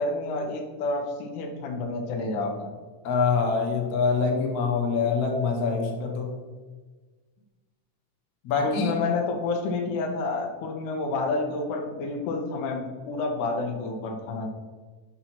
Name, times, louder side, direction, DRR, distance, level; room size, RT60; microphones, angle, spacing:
voice 1, 0.0-2.7 8.6-14.5, left 3 dB, 80° left, 2 dB, 2.4 m, -29 dB
voice 2, 3.0-6.3 8.4-8.9, left 5 dB, 60° left, 1 dB, 1.9 m, -25 dB
6.0 x 5.5 x 5.8 m, 1.4 s
omnidirectional pair, 3.6 m